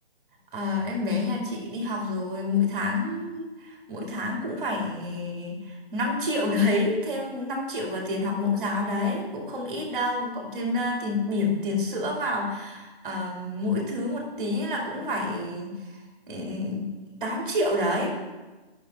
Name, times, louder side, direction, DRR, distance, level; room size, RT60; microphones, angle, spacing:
voice 1, 0.5-15.7 16.3-16.8 17.2-18.1, left 2 dB, 10° right, -1 dB, 1.6 m, -28 dB
10.0 x 5.8 x 4.1 m, 1.2 s
hypercardioid pair, 165°, 31 cm